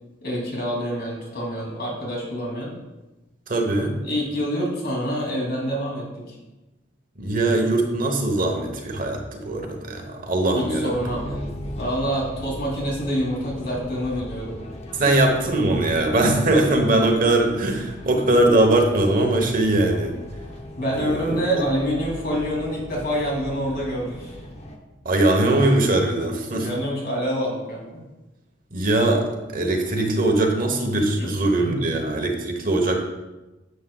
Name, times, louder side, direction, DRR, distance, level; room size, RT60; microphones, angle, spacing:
voice 1, 0.2-2.7 4.0-6.4 8.3-8.4 10.5-11.2 11.7-14.6 15.0-15.1 20.8-24.3 26.6-28.0 31.2-31.3 31.6-31.9, equal, 55° left, -2 dB, 2.7 m, -27 dB
voice 2, 3.5-3.9 7.2-11.6 14.9-20.2 20.9-21.4 25.0-26.7 28.7-33.0, right 2 dB, 45° right, 3 dB, 1.0 m, -21 dB
sound 1, 10.9-24.8, left 1 dB, 35° left, 0.9 m, -38 dB
9.7 x 7.5 x 2.3 m, 1.1 s
head